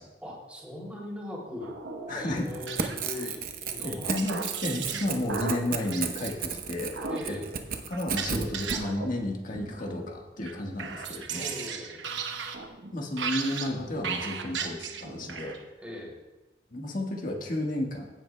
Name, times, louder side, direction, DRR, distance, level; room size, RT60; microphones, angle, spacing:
voice 1, 0.2-1.7 2.1-4.2 7.1-7.5 11.3-12.0 15.8-16.2, left 1 dB, 5° right, -4 dB, 2.8 m, -40 dB
sound 1, 1.6-3.3 3.8-6.3 6.9-7.3 7.9-9.3 9.5-10.2 10.4-15.6, right 5 dB, 75° right, 1.0 m, -36 dB
voice 2, 2.1-2.5 3.1-3.3 3.8-6.9 7.3-7.4 7.9-11.5 12.9-15.6 16.7-18.1, left 1 dB, 50° left, 1 dB, 1.4 m, -32 dB
Crackle / Tearing, 2.4-8.8, right 6 dB, 55° right, 0.8 m, -34 dB
16.0 x 8.0 x 2.2 m, 1.1 s
head